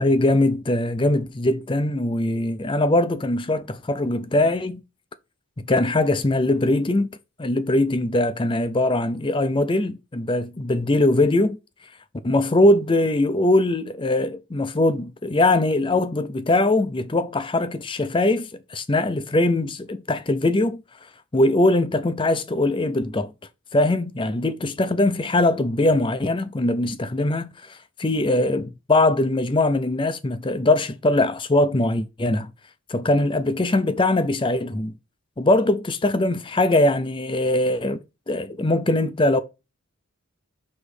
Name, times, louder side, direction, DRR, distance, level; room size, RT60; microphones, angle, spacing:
voice 1, 0.0-4.8 5.6-7.1 7.4-11.6 12.2-20.8 21.3-23.3 23.7-32.5 32.9-34.9 35.4-38.0 38.3-39.4, left 2 dB, 25° left, 0.5 m, -21 dB
6.3 x 3.1 x 4.9 m
head